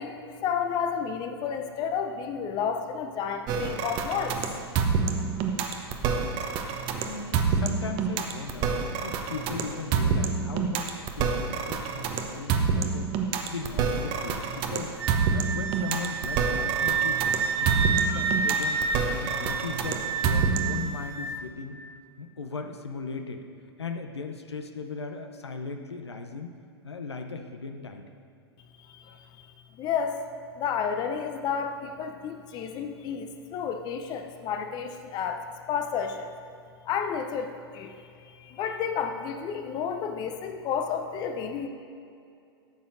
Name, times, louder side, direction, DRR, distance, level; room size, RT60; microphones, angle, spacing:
voice 1, 0.0-4.4 28.8-29.5 29.8-30.2 30.6-36.3 36.9-41.7, left 7 dB, 30° left, 6 dB, 0.6 m, -31 dB
sound 1, 3.5-20.9, right 5 dB, 35° right, 0.8 m, -27 dB
voice 2, 7.0-8.7 9.0-13.1 13.5-15.0 15.3-18.8 19.2-21.8 22.2-23.4 23.8-26.6 26.8-28.0, left 4 dB, 80° left, 6 dB, 0.7 m, -38 dB
Wind instrument woodwind instrument, 15.0-21.4, right 5 dB, 70° right, 0.8 m, -29 dB
14.5 x 6.9 x 2.6 m, 2.5 s
figure-of-eight pair, 100°, 14 cm